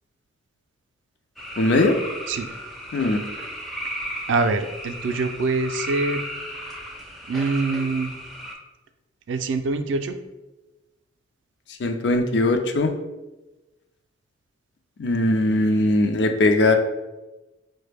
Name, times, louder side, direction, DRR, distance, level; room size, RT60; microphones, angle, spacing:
sound 1, 1.4-8.6, equal, ahead, 0.4 m, -35 dB
voice 1, 1.6-1.9 2.9-3.2 11.8-12.9 15.0-16.8, left 2 dB, 65° left, 6 dB, 0.4 m, -20 dB
voice 2, 4.3-6.3 7.3-8.1 9.3-10.2, right 3 dB, 80° right, 9 dB, 0.3 m, -24 dB
4.8 x 2.1 x 3.3 m, 1.1 s
head